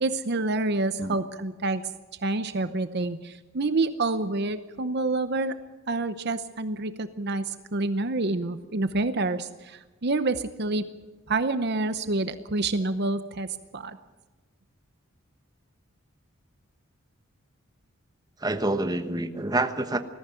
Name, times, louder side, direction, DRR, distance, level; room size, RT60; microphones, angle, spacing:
voice 1, 0.0-1.8 2.2-5.6 5.9-10.9 11.3-14.0, right 2 dB, 50° right, 11 dB, 0.8 m, -28 dB
voice 2, 18.4-20.0, right 2 dB, 20° right, 8 dB, 1.1 m, -27 dB
20.0 x 14.5 x 9.1 m, 1.2 s
head